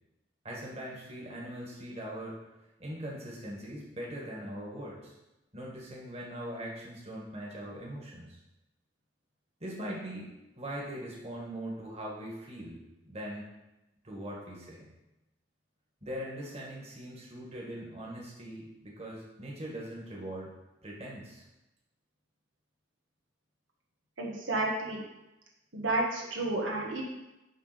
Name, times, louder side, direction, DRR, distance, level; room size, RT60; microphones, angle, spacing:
voice 1, 0.4-2.4 2.8-5.1 5.5-8.4 9.6-13.5 14.0-14.9 16.0-20.5 20.8-21.4, equal, 35° right, -3 dB, 1.8 m, -41 dB
voice 2, 24.2-25.0 25.7-27.0, right 2 dB, 85° right, -1 dB, 1.4 m, -31 dB
10.5 x 3.6 x 5.2 m, 0.97 s
head